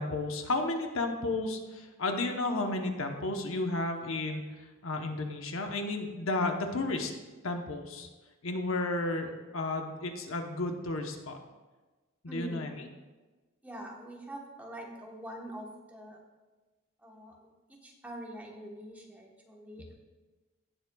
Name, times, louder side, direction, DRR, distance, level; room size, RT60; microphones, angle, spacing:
voice 1, 0.0-7.1 7.4-8.1 8.4-11.4 12.2-12.7, left 2 dB, 70° left, 4 dB, 1.0 m, -33 dB
voice 2, 12.3-12.6 13.6-16.2 17.0-20.0, right 1 dB, 5° right, -1 dB, 1.1 m, -44 dB
17.5 x 7.3 x 2.3 m, 1.2 s
head